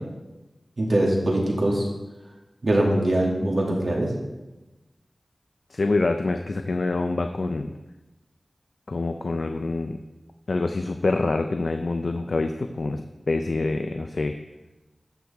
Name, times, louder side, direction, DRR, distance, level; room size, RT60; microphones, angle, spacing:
voice 1, 0.8-1.9 2.6-4.1, right 1 dB, 65° right, -2 dB, 2.3 m, -22 dB
voice 2, 5.7-7.7 8.9-10.0 10.5-13.0 13.3-14.4, left 3 dB, 70° left, 6 dB, 0.5 m, -26 dB
14.0 x 6.5 x 3.5 m, 1.1 s
wide cardioid pair, 70°, 0 cm